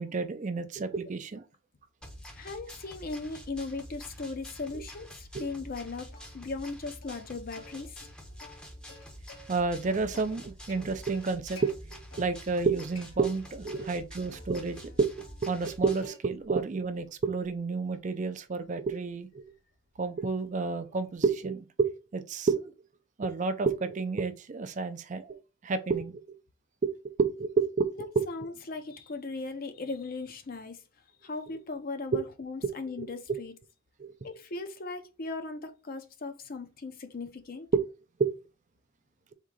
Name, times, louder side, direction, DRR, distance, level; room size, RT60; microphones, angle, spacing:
voice 1, 0.0-1.4 5.3-5.4 9.5-15.1 15.4-19.5 20.0-22.7 23.2-25.4 25.6-26.4 26.8-28.1 32.1-32.2 32.6-32.7 33.0-33.4 34.0-34.1 37.7-37.9 38.2-38.3, right 4 dB, 35° right, 0.4 m, -30 dB
sound 1, 2.0-16.1, equal, 5° left, 0.7 m, -47 dB
voice 2, 2.3-8.1 28.0-30.8 31.2-33.5 34.2-37.7, left 3 dB, 45° left, 0.6 m, -38 dB
Plucked string instrument, 6.1-6.7 7.0-7.2 7.6-9.6 9.9-11.7 12.1-12.6 12.9-13.9 14.3-15.8 16.0-16.5 16.9-21.2, left 3 dB, 70° left, 1.3 m, -54 dB
3.6 x 2.8 x 4.7 m
head